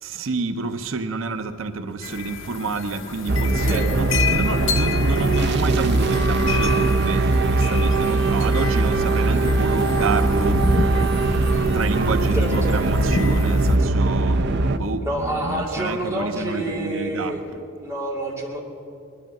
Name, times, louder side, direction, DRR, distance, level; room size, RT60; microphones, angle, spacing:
voice 1, 0.0-10.7 11.7-17.6, right 3 dB, 90° right, 8 dB, 0.8 m, -29 dB
sound 1, 2.0-13.8, left 4 dB, 75° left, 0.8 m, -29 dB
sound 2, 3.3-14.8, right 2 dB, 60° right, 0.7 m, -20 dB
voice 2, 3.5-4.0 12.3-12.8 15.0-17.4 17.8-18.6, right 1 dB, 15° right, -3 dB, 2.5 m, -28 dB
20.5 x 11.5 x 6.1 m, 2.7 s
head